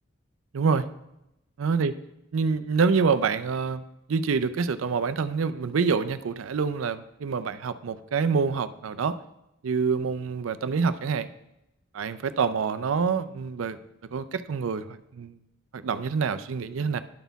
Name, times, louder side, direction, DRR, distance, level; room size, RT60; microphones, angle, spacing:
voice 1, 0.5-0.9 1.6-1.9 2.3-3.8 4.1-9.2 9.6-11.3 11.9-13.8 14.1-15.4 15.7-17.0, right 5 dB, 80° right, 13 dB, 0.4 m, -26 dB
11.5 x 4.1 x 4.0 m, 0.85 s
head